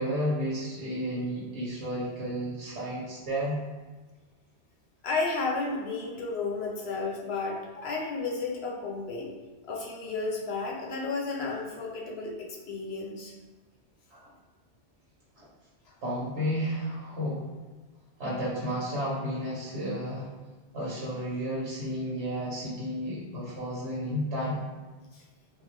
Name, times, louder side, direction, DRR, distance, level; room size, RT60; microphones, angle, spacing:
voice 1, 0.0-3.6 14.1-14.2 15.4-15.5 16.0-17.5 18.2-20.3 20.7-24.7, equal, 70° right, -7 dB, 1.1 m, -32 dB
voice 2, 5.0-9.3 9.6-13.3 15.9-16.0 25.1-25.2, left 3 dB, 70° left, -2 dB, 0.8 m, -32 dB
3.6 x 2.1 x 3.1 m, 1.3 s
omnidirectional pair, 1.2 m